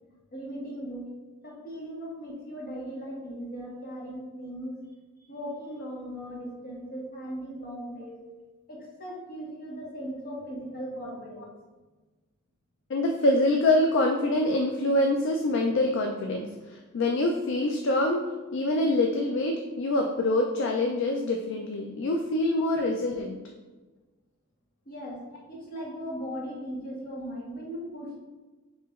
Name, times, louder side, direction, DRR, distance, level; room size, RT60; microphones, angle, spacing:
voice 1, 0.3-1.1 1.4-4.8 5.3-8.2 8.7-11.5 24.8-28.2, equal, 45° left, -4 dB, 1.3 m, -38 dB
voice 2, 12.9-18.2 18.5-23.4, left 1 dB, 60° left, 2 dB, 0.4 m, -25 dB
7.3 x 2.9 x 2.4 m, 1.2 s
head